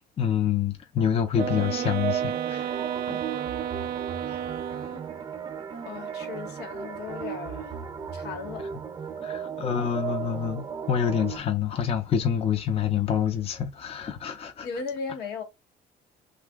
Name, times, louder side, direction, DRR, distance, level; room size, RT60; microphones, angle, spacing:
voice 1, 0.0-2.8 4.3-4.4 9.2-14.7, left 8 dB, 35° left, 0.6 m, -27 dB
sound 1, 1.3-5.2, right 11 dB, 65° right, 0.4 m, -32 dB
sound 2, 1.4-11.4, right 7 dB, 25° right, 0.7 m, -35 dB
voice 2, 5.8-7.7 8.1-8.7 14.6-15.4, left 5 dB, 75° left, 1.2 m, -37 dB
2.9 x 2.3 x 3.4 m
cardioid pair, 110°, 17 cm